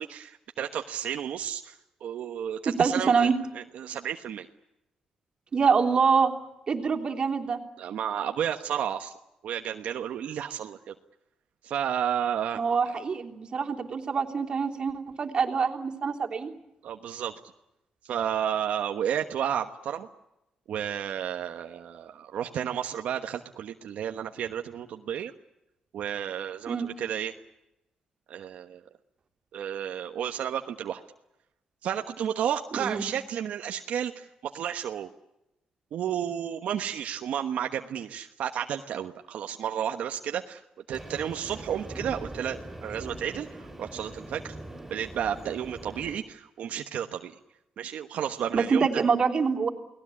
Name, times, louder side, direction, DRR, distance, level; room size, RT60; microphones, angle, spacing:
voice 1, 0.0-3.3 3.5-4.5 7.8-9.1 9.4-10.9 11.6-12.6 12.9-13.0 16.8-17.3 18.0-20.1 20.7-25.3 25.9-27.3 28.3-28.8 29.5-31.0 31.8-35.1 35.9-40.6 40.9-44.6 44.9-47.3 47.8-48.9, right 9 dB, 75° right, 5 dB, 1.2 m, -32 dB
voice 2, 2.6-3.3 5.5-6.3 6.7-7.6 12.6-16.5 26.7-26.9 32.8-33.0 48.5-49.7, right 5 dB, 40° right, 2 dB, 3.2 m, -25 dB
Train, 40.9-46.2, right 1 dB, 10° right, 6.2 m, -42 dB
30.0 x 19.0 x 8.6 m, 0.93 s
wide cardioid pair, 155°, 2 cm